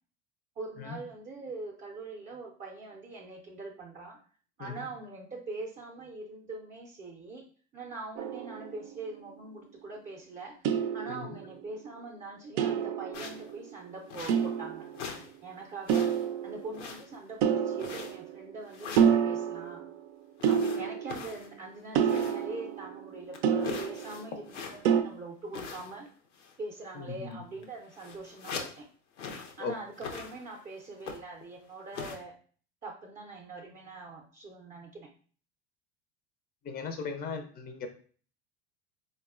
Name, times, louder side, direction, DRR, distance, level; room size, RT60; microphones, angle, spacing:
voice 1, 0.6-4.2 4.6-7.4 7.7-10.7 10.9-14.9 15.4-16.2 16.4-19.9 20.5-26.1 26.6-28.9 29.6-32.4 32.8-35.1, right 3 dB, 20° right, -1 dB, 0.5 m, -43 dB
sound 1, 8.2-9.2 10.6-11.7 12.6-13.8 14.3-15.2 15.9-16.9 17.4-18.6 19.0-20.0 20.4-21.4 21.9-24.3 24.8-25.0, right 8 dB, 70° right, 0.5 m, -29 dB
sound 2, 13.1-13.5 14.1-14.7 14.9-15.3 15.6-16.3 16.7-17.3 17.8-18.3 18.7-19.2 20.4-22.5 22.9-23.0 23.3-25.0 25.5-26.1 26.3-26.6 27.3-27.4 27.6-28.8 29.2-29.6 29.9-30.6 31.0-31.4 31.9-32.2, left 5 dB, 90° left, 0.6 m, -42 dB
voice 2, 27.0-27.4 29.6-29.7 36.6-37.9, left 5 dB, 25° left, 6 dB, 0.4 m, -38 dB
4.0 x 2.2 x 2.4 m, 0.44 s
hypercardioid pair, 90°, 35 cm